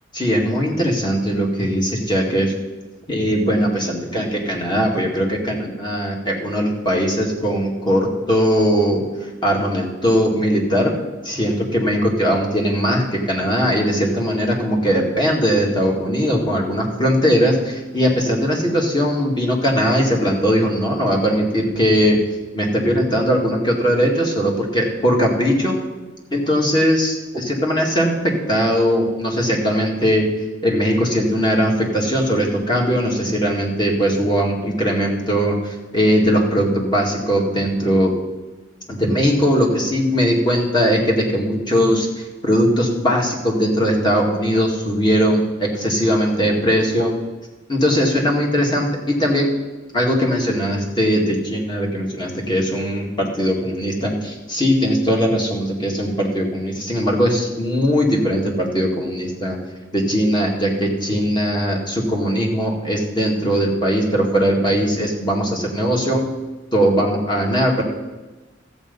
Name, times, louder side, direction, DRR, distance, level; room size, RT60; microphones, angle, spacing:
voice 1, 0.1-2.5 3.1-9.0 9.4-10.9 11.2-22.2 22.5-25.8 26.3-30.2 30.6-38.1 38.9-47.1 47.7-49.5 49.9-59.6 59.9-66.2 66.7-67.8, equal, 25° left, -1 dB, 2.1 m, -19 dB
13.5 x 8.1 x 5.4 m, 1.2 s
head